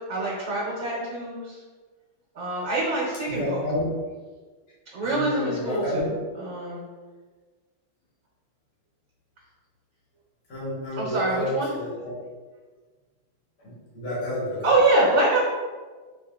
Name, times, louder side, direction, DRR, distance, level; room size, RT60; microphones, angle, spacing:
voice 1, 0.0-1.6 2.3-3.6 4.9-6.1 6.4-6.8 11.0-11.7 14.6-15.4, right 2 dB, 50° right, -6 dB, 1.2 m, -25 dB
voice 2, 3.3-3.8 5.0-6.2 10.5-12.2 13.6-14.8, left 1 dB, 50° left, -8 dB, 1.8 m, -30 dB
5.1 x 2.6 x 2.4 m, 1.4 s
omnidirectional pair, 2.3 m